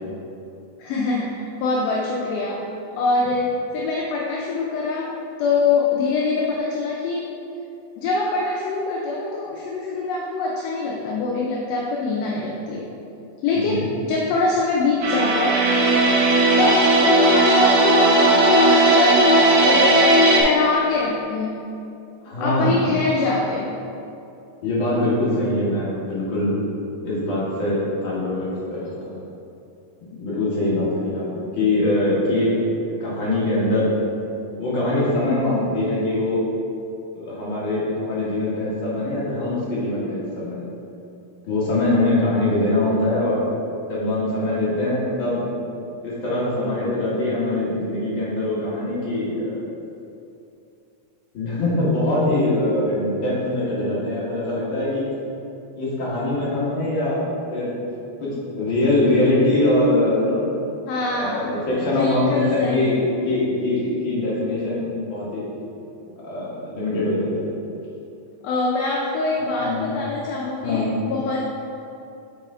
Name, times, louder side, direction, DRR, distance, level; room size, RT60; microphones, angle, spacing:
voice 1, 0.8-2.6 3.0-5.1 5.4-7.3 8.0-12.9 13.4-15.6 16.6-19.2 19.6-20.0 20.3-21.7 22.4-23.7 60.9-61.6 61.8-63.1 68.4-71.4, left 3 dB, 75° left, -3 dB, 1.6 m, -24 dB
sound 1, 15.0-20.4, right 2 dB, 70° right, 1.8 m, -16 dB
voice 2, 22.2-22.9 24.6-26.6 27.0-29.1 30.1-32.6 33.0-33.9 34.6-36.5 37.1-40.7 41.5-43.4 43.9-45.5 46.0-49.5 51.3-55.0 55.8-57.7 58.2-60.5 61.1-65.4 66.2-67.5 69.6-69.9 70.6-70.9, left 1 dB, 50° left, -8 dB, 1.9 m, -23 dB
6.6 x 4.2 x 3.6 m, 2.7 s
omnidirectional pair, 3.4 m